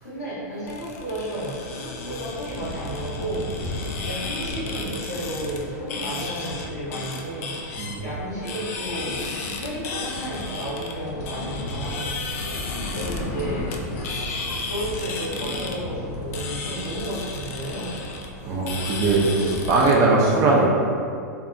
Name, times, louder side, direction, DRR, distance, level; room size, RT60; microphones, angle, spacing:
voice 1, 0.0-12.2 12.9-13.7 14.7-18.0, right 1 dB, 90° left, -10 dB, 1.2 m, -32 dB
sound 1, 0.7-19.9, left 3 dB, 60° left, 0.4 m, -32 dB
voice 2, 18.4-20.7, right 3 dB, 35° right, -3 dB, 0.5 m, -20 dB
2.7 x 2.1 x 2.5 m, 2.3 s
hypercardioid pair, 115°, 9 cm